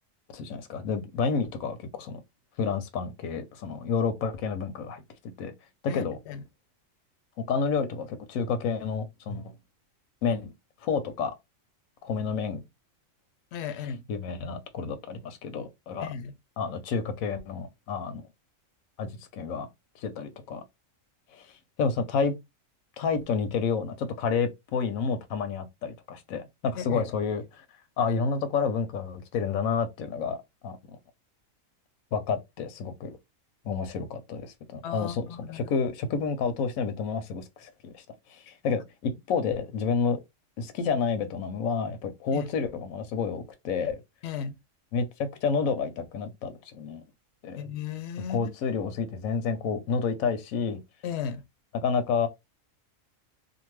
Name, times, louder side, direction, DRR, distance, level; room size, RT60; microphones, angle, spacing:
voice 1, 0.3-2.2 2.6-5.0 5.4-5.5 5.8-6.2 7.4-9.5 10.2-10.5 10.8-11.3 12.0-12.6 14.1-16.1 16.6-18.2 19.0-19.7 19.9-20.6 21.3-22.3 23.0-27.6 28.0-30.8 32.1-33.2 33.6-40.2 40.6-44.0 44.9-47.0 47.4-47.6 48.3-50.8 51.7-52.3, left 5 dB, 85° left, 1.0 m, -30 dB
voice 2, 5.9-6.4 13.5-14.0 16.0-16.3 26.8-27.0 34.8-35.7 42.3-42.5 44.2-44.6 47.6-48.5 51.0-51.4, left 8 dB, 65° left, 0.8 m, -35 dB
2.6 x 2.5 x 3.0 m
omnidirectional pair, 1.4 m